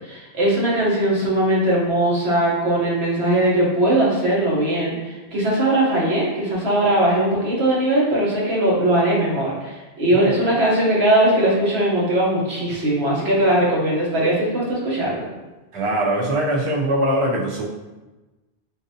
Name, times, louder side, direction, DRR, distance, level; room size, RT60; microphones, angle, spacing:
voice 1, 0.3-15.3, right 1 dB, 65° right, -5 dB, 1.2 m, -20 dB
voice 2, 15.7-17.7, right 1 dB, 40° right, -2 dB, 0.5 m, -22 dB
3.9 x 2.6 x 2.7 m, 1.1 s
omnidirectional pair, 1.2 m